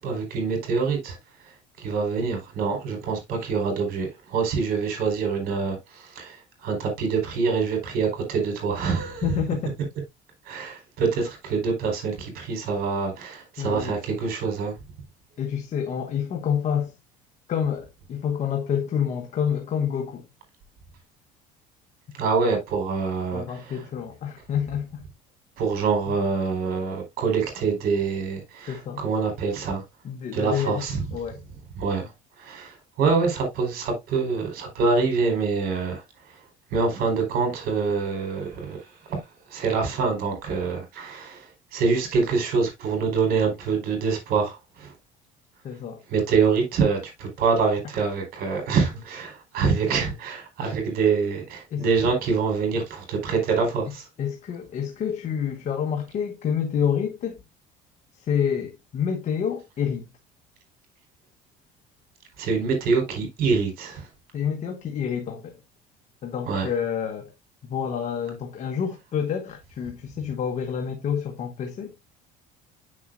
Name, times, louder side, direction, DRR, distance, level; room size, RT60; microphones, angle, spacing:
voice 1, 0.0-1.2 1.8-9.4 10.4-14.7 22.2-23.8 25.6-29.8 30.3-31.0 31.8-32.1 32.4-36.0 36.7-39.2 39.5-44.9 46.1-54.0 62.4-64.1 66.5-66.7, right 5 dB, 60° right, 4.5 m, -25 dB
voice 2, 9.2-9.9 13.6-14.0 15.4-16.9 17.5-20.2 23.3-25.0 26.1-26.2 28.7-29.0 30.0-31.4 45.6-46.0 51.7-51.9 54.2-57.4 58.2-60.1 64.3-65.6 66.2-67.3 67.6-71.9, left 8 dB, 45° left, 1.2 m, -28 dB
8.7 x 6.6 x 2.5 m
cardioid pair, 125°, 17 cm